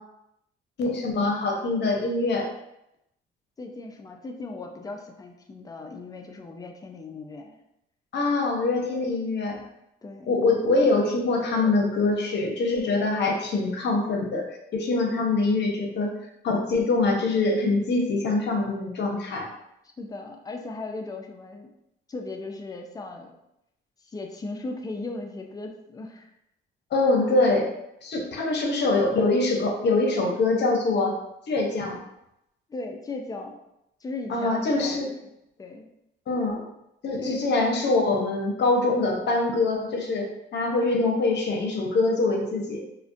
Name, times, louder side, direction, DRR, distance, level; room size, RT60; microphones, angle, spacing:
voice 1, 0.8-2.5 8.1-9.6 10.3-14.5 14.7-16.1 16.4-19.5 26.9-27.7 28.0-31.1 31.5-32.0 34.3-35.1 36.3-36.7 37.0-42.8, left 3 dB, 60° left, 0 dB, 0.7 m, -24 dB
voice 2, 3.6-7.6 10.0-10.3 20.0-21.7 22.1-23.3 24.0-26.3 32.7-33.6 34.0-35.3 35.6-35.9 37.2-37.4, left 2 dB, 20° left, 3 dB, 0.4 m, -37 dB
2.4 x 2.1 x 2.5 m, 0.83 s
cardioid pair, 90°, 20 cm